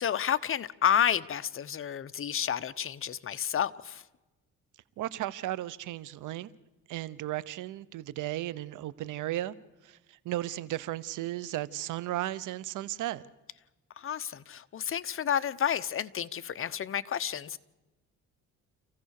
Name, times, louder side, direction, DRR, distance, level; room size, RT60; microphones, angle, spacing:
voice 1, 0.0-4.0 14.0-17.6, left 9 dB, 45° left, 0.9 m, -30 dB
voice 2, 5.0-6.5 6.9-9.6 9.8-13.2, right 14 dB, 85° right, 0.9 m, -35 dB
27.5 x 15.5 x 6.6 m
cardioid pair, 90°, 30 cm